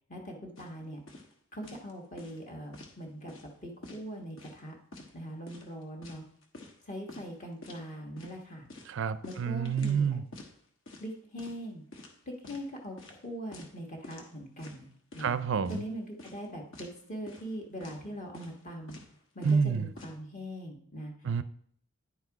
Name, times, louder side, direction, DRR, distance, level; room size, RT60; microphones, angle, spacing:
voice 1, 0.1-1.0 1.5-3.3 3.6-4.7 5.1-6.2 6.8-8.7 9.2-10.2 11.0-11.8 12.3-15.3 15.7-19.0 19.3-21.1, equal, 35° left, 1.4 m, -41 dB
sound 1, 0.6-0.7 1.1-1.3 1.6-1.9 2.2-2.9 3.3-3.5 3.8-4.6 4.9-5.1 5.5-6.8 7.1-7.3 7.6-7.8 8.2-8.4 8.7-10.0 10.3-10.5 10.9-11.1 11.4-11.6 11.9-12.6 13.0-13.2 13.5-13.8 14.0-14.3 14.6-15.3 15.6-15.8 16.2-16.5 16.7-16.9 17.3-17.5 17.8-18.0 18.3-18.6 18.9-19.1 19.4-20.2, left 2 dB, 60° left, 1.3 m, -48 dB
voice 2, 8.9-10.2 15.2-15.8 19.4-19.9 21.2-21.4, right 6 dB, 55° right, 0.4 m, -28 dB
10.0 x 4.6 x 4.7 m
head